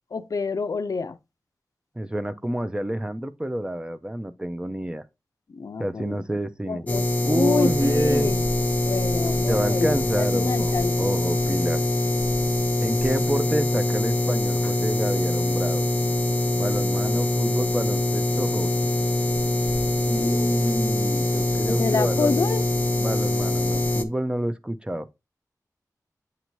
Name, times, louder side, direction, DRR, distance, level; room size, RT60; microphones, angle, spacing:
voice 1, 0.1-1.2 5.5-6.2 6.7-8.4 8.8-9.9 10.2-11.1 20.1-20.6 21.8-22.6, left 4 dB, 60° left, 0.5 m, -28 dB
voice 2, 2.0-5.0 5.8-6.8 7.2-8.3 9.5-11.8 12.8-15.8 16.6-18.7 20.0-22.4 23.0-25.1, right 1 dB, 15° right, 0.5 m, -28 dB
sound 1, 6.9-24.0, left 1 dB, 25° left, 0.8 m, -24 dB
7.9 x 2.8 x 4.5 m
wide cardioid pair, 100°, 7 cm